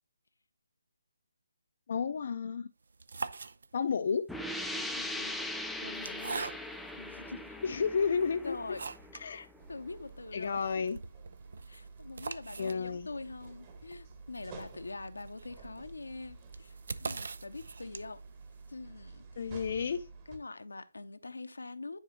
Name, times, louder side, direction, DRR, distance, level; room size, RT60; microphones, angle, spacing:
voice 1, 1.9-2.7 3.7-4.3 7.6-8.6 9.2-9.5 10.3-11.0 12.6-13.1 19.4-20.0, left 6 dB, 50° left, 0.5 m, -31 dB
sound 1, 2.8-4.1 4.9-7.0 7.6-7.7 8.2-9.3 9.6-9.7 10.0-10.1 10.4-18.3, right 4 dB, 60° right, 0.5 m, -43 dB
sound 2, 4.3-9.8, left 1 dB, ahead, 0.5 m, -40 dB
voice 2, 4.8-5.4 5.8-6.4 7.0-7.6 8.4-8.9 9.7-10.6 11.7-18.2 18.7-19.5 20.3-22.0, left 3 dB, 75° left, 0.8 m, -44 dB
sound 3, 9.6-20.4, right 4 dB, 30° right, 1.6 m, -51 dB
10.0 x 4.9 x 3.1 m
figure-of-eight pair, 145°, 0 cm